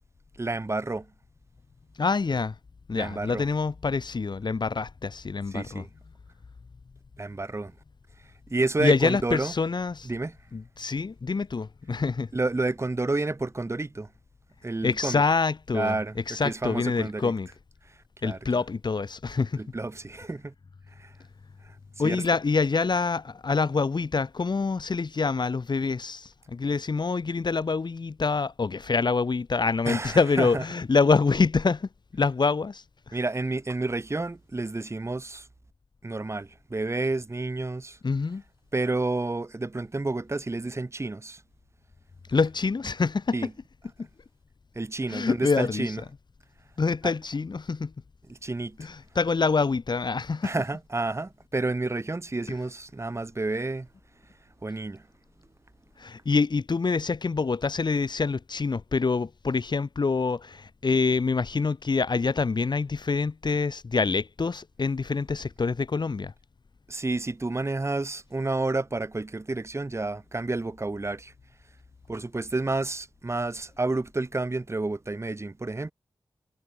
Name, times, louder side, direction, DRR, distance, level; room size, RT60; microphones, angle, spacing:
voice 1, 0.4-1.0 2.9-3.4 5.5-5.9 7.2-7.7 8.5-9.5 10.0-10.3 12.3-14.1 14.6-15.2 15.7-16.2 16.4-17.3 18.2-18.4 19.6-20.5 21.0-21.1 22.0-22.2 29.8-30.6 33.1-35.4 36.0-38.0 38.7-41.4 43.3-43.5 44.7-46.0 47.0-47.1 48.3-48.8 50.4-53.9 54.6-55.0 66.9-71.3 72.1-75.9, right 2 dB, 30° right, 1.5 m, -30 dB
voice 2, 2.0-2.5 2.9-5.8 8.8-10.1 10.5-12.3 14.8-16.0 16.3-17.5 18.2-19.6 22.0-33.2 38.0-38.4 42.3-43.5 45.1-46.0 46.8-47.9 48.8-50.5 52.5-52.6 56.0-66.3, left 4 dB, 55° left, 1.8 m, -26 dB
cardioid pair, 45°, 9 cm